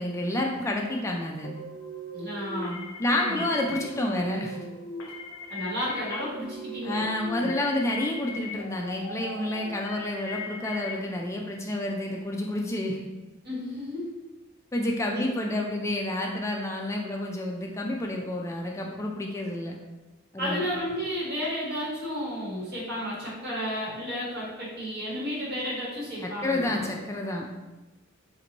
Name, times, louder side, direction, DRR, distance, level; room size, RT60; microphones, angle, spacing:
voice 1, 0.0-1.5 3.0-4.6 6.8-13.0 14.7-19.7 20.3-20.6 26.2-27.5, left 1 dB, 15° left, 0 dB, 0.3 m, -29 dB
sound 1, 1.4-11.0, left 2 dB, 70° left, 0.6 m, -39 dB
voice 2, 2.1-3.6 5.5-7.5 13.4-14.0 15.1-15.2 20.4-26.9, equal, 50° right, -7 dB, 1.4 m, -33 dB
2.9 x 2.5 x 3.9 m, 1.1 s
head